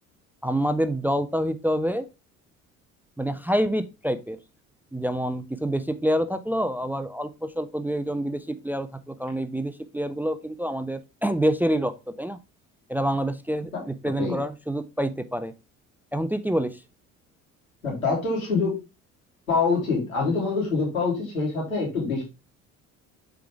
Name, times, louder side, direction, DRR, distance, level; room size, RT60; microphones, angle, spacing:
voice 1, 0.4-2.1 3.2-4.4 4.9-12.4 12.9-15.5 16.1-16.8, equal, 5° right, 11 dB, 0.6 m, -27 dB
voice 2, 17.8-18.7 19.5-22.2, left 4 dB, 90° left, -4 dB, 3.4 m, -25 dB
6.9 x 4.9 x 3.5 m, 0.26 s
figure-of-eight pair, 55°, 41 cm